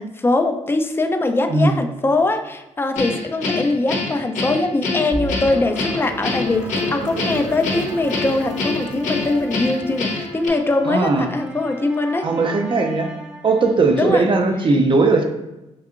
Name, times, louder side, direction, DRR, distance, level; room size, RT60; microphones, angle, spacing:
voice 1, 0.0-12.3 13.9-14.2, left 2 dB, 20° left, 6 dB, 0.4 m, -22 dB
Guitar, 3.0-10.5, left 3 dB, 80° left, 0.7 m, -25 dB
sound 1, 5.1-14.1, right 1 dB, 10° right, 0.8 m, -35 dB
sound 2, 5.2-11.1, right 3 dB, 85° right, 0.4 m, -36 dB
voice 2, 10.9-11.3 12.2-13.1 13.4-15.2, right 3 dB, 40° right, 4 dB, 0.6 m, -18 dB
4.6 x 2.7 x 2.4 m, 0.98 s
cardioid pair, 70°, 13 cm